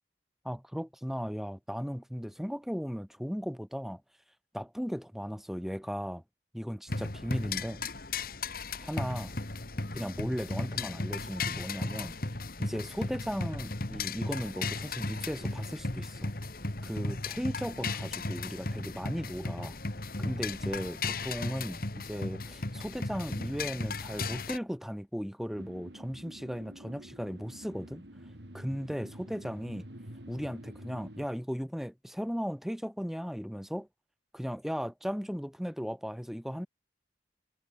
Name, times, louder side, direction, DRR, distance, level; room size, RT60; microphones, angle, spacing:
voice 1, 0.4-4.0 4.5-6.2 6.5-7.8 8.8-9.3 9.9-12.1 12.6-16.3 16.8-19.8 20.2-28.0 28.5-29.9 30.3-33.9 34.3-36.7, equal, ahead, 2.8 m, -36 dB
sound 1, 6.9-24.6, left 3 dB, 55° left, 2.0 m, -36 dB
sound 2, 25.5-31.3, right 1 dB, 70° right, 4.5 m, -48 dB
head